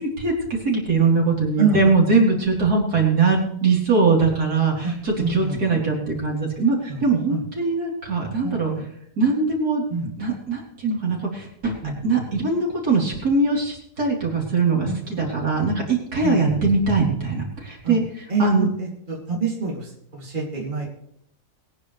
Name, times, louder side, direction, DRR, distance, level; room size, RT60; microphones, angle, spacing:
voice 1, 0.2-8.7 9.2-9.8 10.2-11.7 12.0-18.0 18.4-18.7, right 4 dB, 65° right, -2 dB, 4.2 m, -21 dB
voice 2, 4.8-5.8 6.9-7.0 7.3-7.4 8.4-8.8 9.9-10.1 11.8-12.2 14.8-15.1 16.2-16.6 17.8-18.0 18.3-21.0, right 4 dB, 30° right, -3 dB, 3.0 m, -27 dB
22.5 x 9.8 x 3.3 m, 0.72 s
omnidirectional pair, 1.8 m